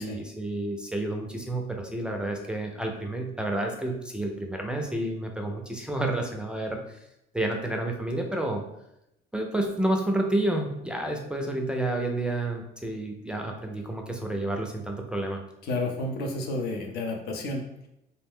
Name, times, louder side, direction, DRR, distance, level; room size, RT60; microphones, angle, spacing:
voice 1, 0.0-7.0 7.3-8.6 9.3-15.4, right 1 dB, 5° right, 2 dB, 0.4 m, -30 dB
voice 2, 15.6-17.9, left 2 dB, 70° left, 2 dB, 0.7 m, -31 dB
2.6 x 2.1 x 3.5 m, 0.83 s
cardioid pair, 110°, 17 cm